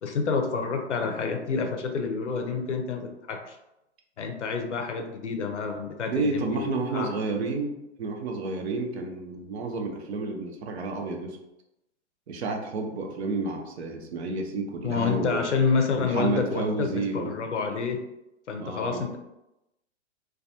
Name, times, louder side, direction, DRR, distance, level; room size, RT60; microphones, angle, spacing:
voice 1, 0.0-3.6 4.2-7.1 14.8-18.0 18.5-19.2, left 5 dB, 85° left, 5 dB, 0.6 m, -28 dB
voice 2, 6.1-11.4 12.3-15.4 15.9-17.4 18.6-19.0, right 3 dB, 65° right, 3 dB, 0.6 m, -31 dB
2.3 x 2.2 x 2.6 m, 0.91 s
figure-of-eight pair, 110°, 35 cm